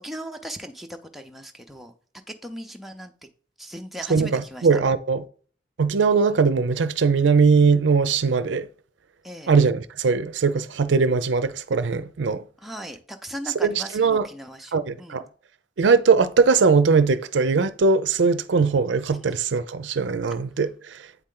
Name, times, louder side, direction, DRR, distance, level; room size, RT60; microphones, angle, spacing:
voice 1, 0.0-1.9 2.3-3.1 3.6-4.7 9.2-9.5 12.6-15.2 19.1-19.3, equal, ahead, 0.5 m, -38 dB
voice 2, 4.1-5.2 5.8-8.7 9.5-12.4 13.6-14.3 14.7-15.2 15.8-21.0, right 4 dB, 80° right, 0.5 m, -20 dB
8.3 x 4.3 x 3.8 m
head